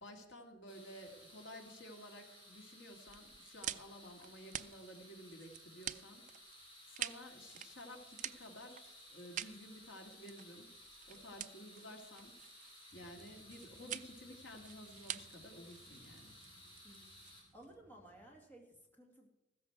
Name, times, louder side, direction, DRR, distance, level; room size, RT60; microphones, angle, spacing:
voice 1, 0.0-6.5 6.9-10.7 11.1-12.4 12.9-16.4, equal, 75° left, 3 dB, 2.1 m, -53 dB
sound 1, 0.7-17.4, left 1 dB, 25° left, 5.7 m, -58 dB
sound 2, 3.1-17.7, right 11 dB, 40° right, 0.4 m, -48 dB
sound 3, 12.9-18.4, right 1 dB, 60° right, 3.3 m, -67 dB
voice 2, 16.4-17.2 17.5-19.3, right 1 dB, 10° left, 0 dB, 2.1 m, -59 dB
15.0 x 13.5 x 4.6 m, 0.96 s
head